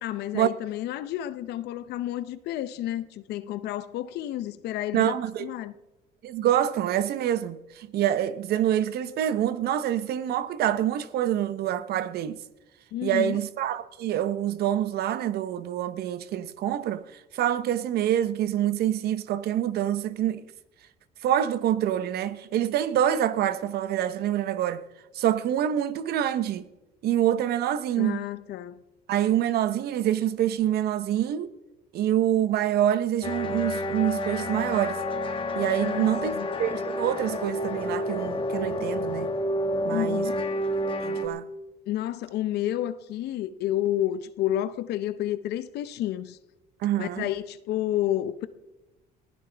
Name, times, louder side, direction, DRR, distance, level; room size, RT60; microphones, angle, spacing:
voice 1, 0.0-5.8 12.9-13.4 28.0-28.8 35.8-36.5 39.9-40.4 41.9-46.4 47.0-48.5, left 13 dB, 75° left, 0.7 m, -30 dB
voice 2, 4.9-5.5 6.2-12.4 13.0-20.4 21.2-24.9 25.1-26.7 27.0-28.2 29.1-31.5 31.9-35.0 35.5-36.3 36.6-39.3 39.8-40.3 41.0-41.5 46.8-47.3, right 11 dB, 70° right, 0.9 m, -26 dB
sound 1, 33.2-41.3, left 1 dB, 30° left, 1.6 m, -29 dB
20.5 x 15.0 x 3.4 m
cardioid pair, 110°, 17 cm